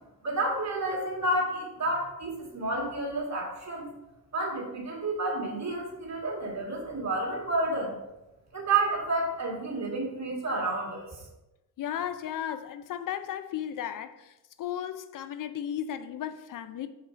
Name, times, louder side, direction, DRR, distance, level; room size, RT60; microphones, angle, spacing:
voice 1, 0.2-3.9 4.3-7.9 8.5-11.2, right 2 dB, 45° right, 2.1 m, -30 dB
voice 2, 11.8-16.9, left 10 dB, 60° left, 0.5 m, -35 dB
4.9 x 4.1 x 5.1 m
cardioid pair, 90°, 37 cm